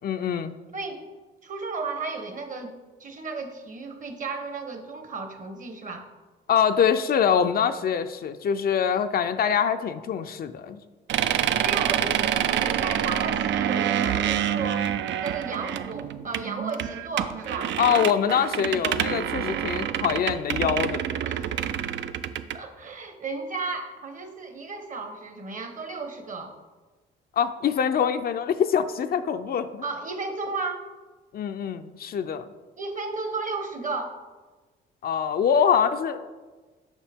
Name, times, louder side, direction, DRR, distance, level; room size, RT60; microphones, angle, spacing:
voice 1, 0.0-0.5 6.5-10.8 17.8-21.0 27.4-29.8 31.3-32.4 35.0-36.3, left 7 dB, 50° left, 10 dB, 0.4 m, -24 dB
voice 2, 0.7-1.0 1.4-2.7 3.0-6.0 11.6-14.8 15.2-17.8 21.2-21.6 22.5-26.5 29.8-30.8 32.8-34.2, right 4 dB, 40° right, 6 dB, 1.0 m, -34 dB
sound 1, 11.1-22.6, right 10 dB, 70° right, 0.4 m, -27 dB
7.2 x 5.5 x 3.5 m, 1.3 s
cardioid pair, 90°, 20 cm